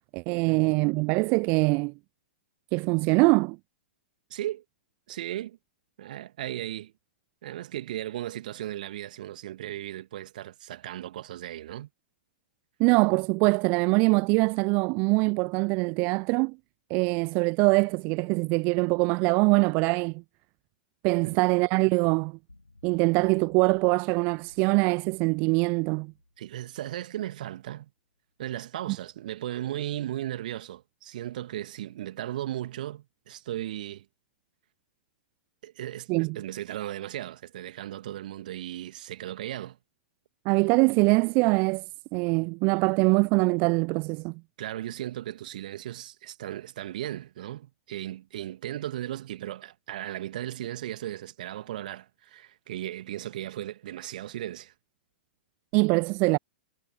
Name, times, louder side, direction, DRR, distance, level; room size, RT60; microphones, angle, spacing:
voice 1, 0.1-1.9 2.7-3.6 12.8-16.6 16.9-20.2 21.0-22.4 22.8-26.1 36.1-36.4 40.5-41.8 42.1-44.3 55.7-56.4, right 30 dB, 35° right, 0.3 m, -23 dB
voice 2, 4.3-4.6 5.1-5.6 6.0-6.9 7.4-11.9 21.2-21.4 26.4-27.9 28.4-34.1 35.6-39.8 44.6-54.7, right 13 dB, 50° right, 2.2 m, -36 dB
sound 1, 22.5-27.8, left 2 dB, 85° left, 4.1 m, -58 dB
figure-of-eight pair, 105°, 6 cm